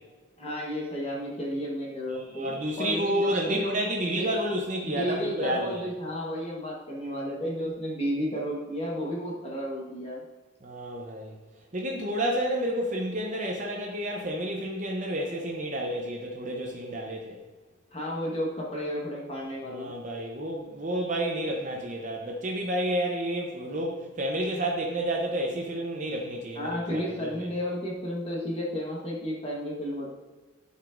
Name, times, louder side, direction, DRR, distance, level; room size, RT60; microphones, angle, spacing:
voice 1, 0.4-3.8 4.0-4.3 4.8-10.2 17.9-19.9 26.5-30.1, equal, 30° left, -3 dB, 1.2 m, -32 dB
voice 2, 2.1-5.8 10.6-11.3 11.7-17.4 19.7-27.3, right 1 dB, 40° right, 0 dB, 0.7 m, -30 dB
11.0 x 4.9 x 2.5 m, 1.3 s
head